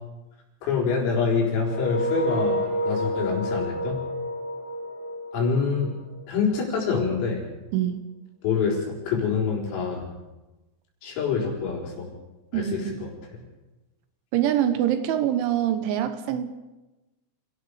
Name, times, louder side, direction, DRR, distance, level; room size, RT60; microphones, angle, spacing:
voice 1, 0.6-4.1 5.3-5.9 6.3-7.4 8.4-10.1 11.0-12.1 12.5-12.8, left 5 dB, 85° left, -1 dB, 7.1 m, -26 dB
sound 1, 1.6-6.5, equal, 55° left, 5.9 m, -29 dB
voice 2, 12.5-13.1 14.3-16.6, right 11 dB, 75° right, 10 dB, 3.3 m, -25 dB
29.5 x 18.0 x 5.0 m, 1.1 s
omnidirectional pair, 5.9 m